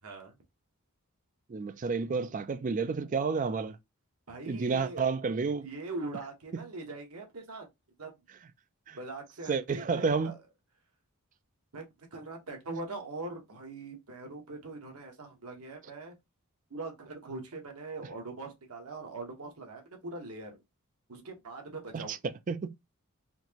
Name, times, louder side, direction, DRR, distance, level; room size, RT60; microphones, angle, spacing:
voice 1, 0.0-0.3 4.3-5.0 5.6-7.7 8.0-8.1 9.0-10.4 11.7-16.1 16.7-20.6 21.1-22.2, right 2 dB, 85° right, 1.2 m, -42 dB
voice 2, 1.5-3.8 4.5-5.7 6.5-6.6 8.9-9.0 9.5-10.4 21.9-22.7, right 5 dB, 35° right, 0.3 m, -30 dB
4.3 x 2.9 x 2.9 m
head